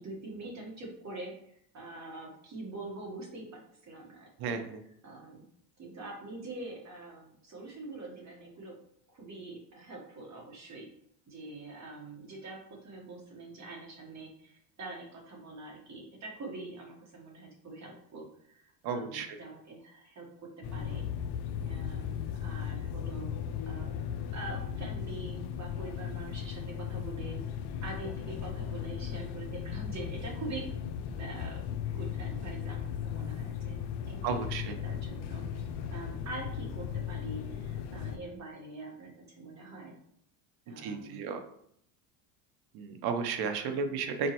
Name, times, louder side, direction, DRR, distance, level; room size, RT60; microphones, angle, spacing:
voice 1, 0.0-1.3 1.7-4.6 5.0-5.5 5.8-8.8 9.1-10.9 11.3-21.1 21.6-23.3 23.6-23.9 24.3-27.4 27.8-30.6 31.2-31.6 31.9-33.8 34.1-39.9 40.7-41.3 43.6-43.9, right 2 dB, 35° right, -1 dB, 1.4 m, -44 dB
voice 2, 4.4-4.8 18.8-19.4 34.2-34.8 40.8-41.4 42.7-44.3, right 5 dB, 50° right, 7 dB, 0.7 m, -33 dB
sound 1, 20.6-38.2, left 8 dB, 55° left, 0.6 m, -37 dB
4.3 x 3.1 x 2.9 m, 0.70 s
supercardioid pair, 105°, 50 cm